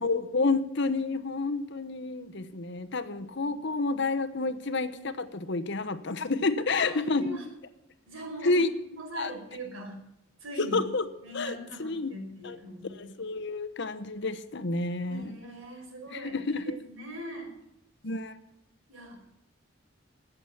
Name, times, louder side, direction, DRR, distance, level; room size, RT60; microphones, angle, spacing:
voice 1, 0.0-7.4 8.4-8.7 9.2-9.3 10.6-11.1 11.3-12.2 12.4-12.6 12.9-15.3 16.1-16.7 18.0-18.3, left 3 dB, 60° left, 12 dB, 1.0 m, -29 dB
voice 2, 6.7-7.5 8.0-8.5 9.0-10.0 10.4-10.8 11.2-13.1 15.1-17.5 18.9-19.3, right 1 dB, 80° right, 2 dB, 5.2 m, -41 dB
20.0 x 8.1 x 7.3 m, 0.85 s
head